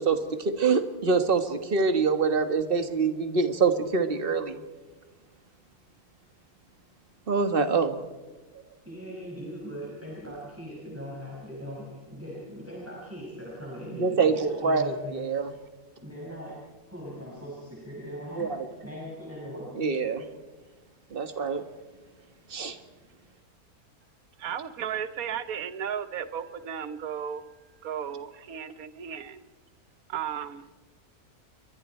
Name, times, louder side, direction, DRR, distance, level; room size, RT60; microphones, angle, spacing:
voice 1, 0.0-4.6 7.3-8.0 13.9-15.5 18.4-18.7 19.7-20.2 21.1-21.6 22.5-22.8, right 4 dB, 35° right, 8 dB, 1.8 m, -25 dB
voice 2, 8.8-15.3 16.0-16.6 16.9-19.7, equal, 10° right, -5 dB, 5.7 m, -40 dB
voice 3, 24.4-27.5 27.8-29.4 30.1-30.6, right 8 dB, 70° right, 12 dB, 1.5 m, -34 dB
29.0 x 23.5 x 4.5 m, 1.2 s
omnidirectional pair, 1.6 m